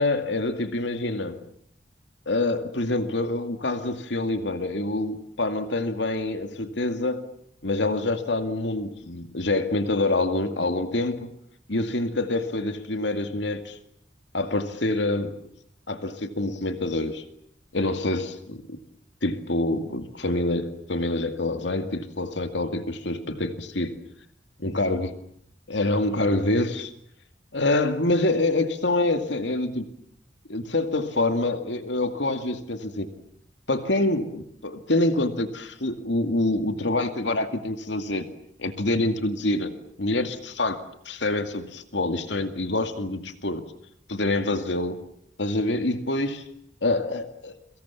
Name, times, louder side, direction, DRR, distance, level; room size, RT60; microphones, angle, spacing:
voice 1, 0.0-1.4 2.3-7.2 7.6-11.3 11.7-13.8 14.3-15.4 15.9-17.2 17.7-18.8 19.2-24.0 24.6-25.1 25.7-26.9 27.5-29.9 30.5-33.1 33.7-38.3 38.6-39.7 40.0-40.8 41.1-43.6 44.1-45.0 45.4-46.5 46.8-47.6, left 2 dB, 80° left, 2.3 m, -26 dB
30.0 x 24.0 x 7.1 m
head